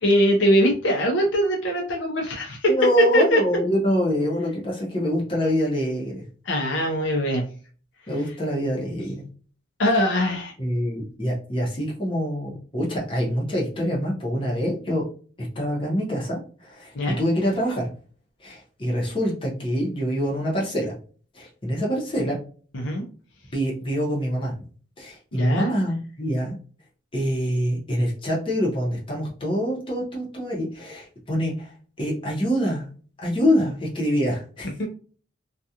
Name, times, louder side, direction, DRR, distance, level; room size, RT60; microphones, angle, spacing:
voice 1, 0.0-2.7 3.1-3.4 6.5-7.4 9.8-10.5 16.9-17.2 22.7-23.0 25.3-25.7 34.8-34.9, equal, 60° left, 1 dB, 0.6 m, -22 dB
voice 2, 2.7-6.2 8.1-9.2 10.6-15.0 15.4-17.9 18.4-20.9 21.3-22.4 23.5-24.5 25.0-26.6 27.1-31.7 32.0-32.9 33.2-34.7, equal, 25° left, -4 dB, 0.8 m, -25 dB
2.4 x 2.3 x 2.8 m, 0.41 s
head